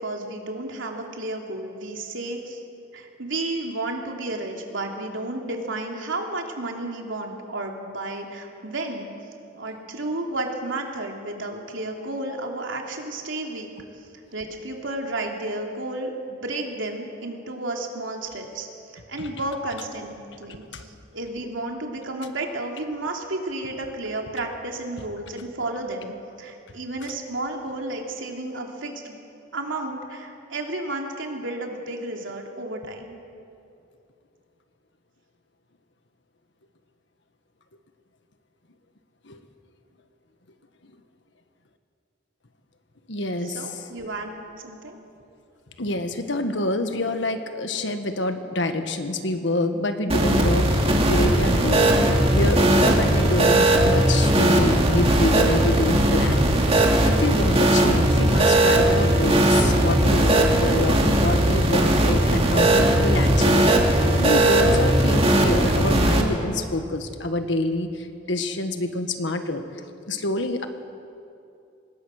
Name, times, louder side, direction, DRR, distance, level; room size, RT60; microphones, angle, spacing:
voice 1, 0.0-2.6 2.9-9.1 9.6-13.7 14.3-18.7 18.9-26.1 26.4-29.2 29.5-33.2 43.4-45.0, right 2 dB, 85° right, 1 dB, 3.1 m, -32 dB
voice 2, 43.1-43.9 45.8-52.0 52.3-56.5 57.1-69.6 70.1-70.7, left 1 dB, 70° left, 7 dB, 1.6 m, -27 dB
sound 1, 50.1-66.2, right 1 dB, 30° right, 2.4 m, -19 dB
25.5 x 20.5 x 6.6 m, 2.6 s
head